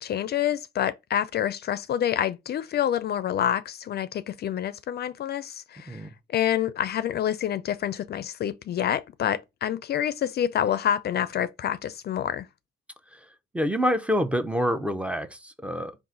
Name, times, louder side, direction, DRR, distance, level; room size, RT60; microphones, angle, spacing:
voice 1, 0.0-12.5, left 10 dB, 55° left, 0.4 m, -27 dB
voice 2, 13.5-16.0, equal, 5° right, 0.6 m, -27 dB
3.9 x 2.5 x 3.8 m
cardioid pair, 90°, 20 cm